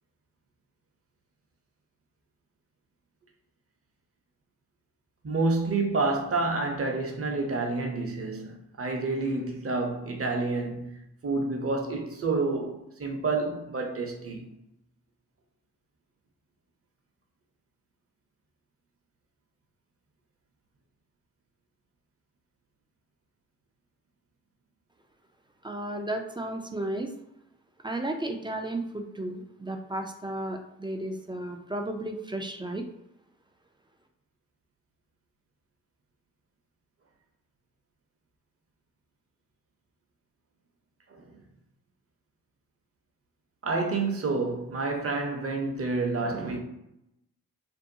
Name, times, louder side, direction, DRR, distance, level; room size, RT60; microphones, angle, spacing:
voice 1, 5.2-11.0 11.2-14.5 41.1-41.3 43.6-46.6, right 3 dB, 40° right, 0.7 m, -29 dB
voice 2, 25.6-27.1 27.8-32.8, right 1 dB, 15° right, 0.4 m, -33 dB
2.6 x 2.2 x 2.6 m
supercardioid pair, 45°, 37 cm